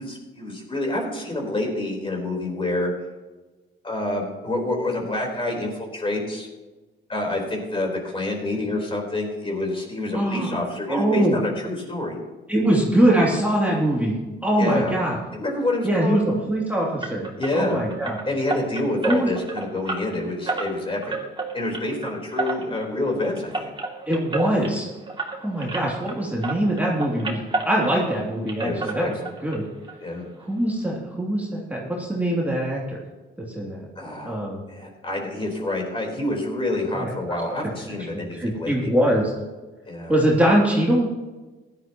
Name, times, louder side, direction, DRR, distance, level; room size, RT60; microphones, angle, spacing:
voice 1, 0.0-2.9 3.8-6.5 7.1-12.2 14.6-15.0 15.3-16.3 17.4-17.8 18.2-21.2 21.5-23.7 28.6-29.3 30.0-30.3 34.0-38.9 39.8-40.1, left 2 dB, 25° left, 0 dB, 4.3 m, -27 dB
voice 2, 10.1-10.5 10.9-11.4 12.5-14.2 14.4-15.2 15.8-16.2 16.5-18.2 19.1-19.3 24.1-24.9 25.4-29.2 29.4-29.6 30.4-33.0 33.5-33.8 34.2-34.6 36.9-37.4 38.1-39.3 40.1-41.1, right 1 dB, 5° right, -4 dB, 2.9 m, -22 dB
sound 1, 17.0-26.2 26.4-28.2 28.5-29.6 29.8-30.0 30.4-30.5 30.8-30.9, right 3 dB, 25° right, 2.7 m, -31 dB
16.5 x 12.0 x 3.1 m, 1.2 s
cardioid pair, 90°, 20 cm